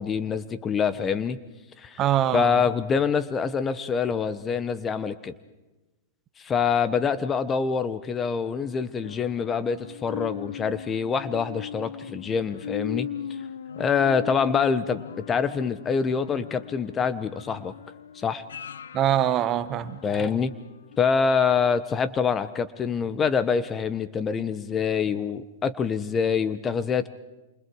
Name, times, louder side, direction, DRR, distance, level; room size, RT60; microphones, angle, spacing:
voice 1, 0.0-1.4 1.8-2.0 2.3-5.3 6.4-13.1 13.8-15.0 15.3-17.7 18.1-18.4 20.0-20.5 21.0-27.1, left 6 dB, 20° left, 14 dB, 1.1 m, -25 dB
voice 2, 2.0-2.6 18.9-20.0, right 11 dB, 35° right, 13 dB, 1.4 m, -23 dB
sound 1, 9.0-20.5 20.9-21.0, left 8 dB, 85° left, 0.8 m, -39 dB
28.5 x 27.5 x 4.8 m, 1.1 s
hypercardioid pair, 120°, 0 cm